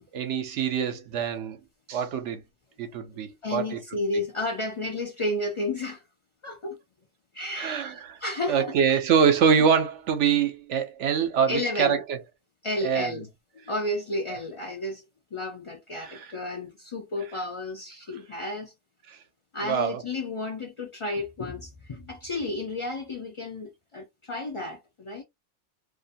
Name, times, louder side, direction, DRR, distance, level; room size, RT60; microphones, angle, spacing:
voice 1, 0.1-1.6 1.9-2.4 2.8-3.8 7.6-8.2 8.5-12.2 12.8-13.2 16.0-16.3 19.6-20.0, right 7 dB, 75° right, 1.0 m, -24 dB
voice 2, 3.4-6.0 6.4-6.8 7.3-9.0 11.5-12.0 12.6-13.3 13.7-15.0 15.3-18.7 19.5-25.2, left 2 dB, 50° left, 0.4 m, -32 dB
2.6 x 2.1 x 2.5 m
omnidirectional pair, 1.3 m